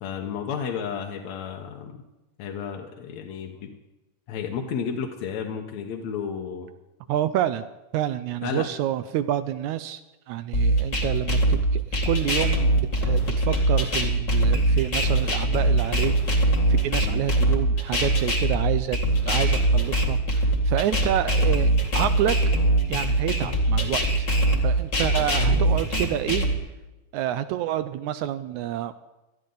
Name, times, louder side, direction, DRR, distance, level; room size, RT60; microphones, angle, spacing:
voice 1, 0.0-2.0 2.4-3.7 4.3-6.7 8.4-8.7 17.0-17.2 25.2-25.5, left 7 dB, 65° left, 1 dB, 2.1 m, -32 dB
voice 2, 7.1-7.7 7.9-10.0 10.3-22.6 22.9-24.3 24.6-26.5 27.1-28.9, right 12 dB, 80° right, 12 dB, 1.8 m, -28 dB
sound 1, 10.5-26.5, right 1 dB, 30° left, 1.7 m, -22 dB
20.0 x 13.0 x 3.9 m, 1.0 s
omnidirectional pair, 3.8 m